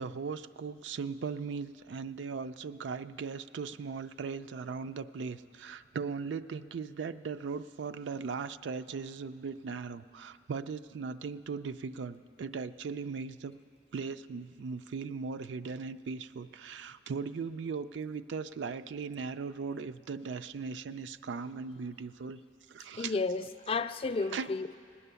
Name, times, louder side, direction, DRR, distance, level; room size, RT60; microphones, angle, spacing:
voice 1, 0.0-13.5 13.9-22.4 22.7-23.2 24.3-24.5, right 5 dB, 75° right, 0.4 m, -38 dB
voice 2, 23.0-24.8, left 3 dB, 30° left, 0.3 m, -32 dB
18.0 x 9.8 x 6.8 m
head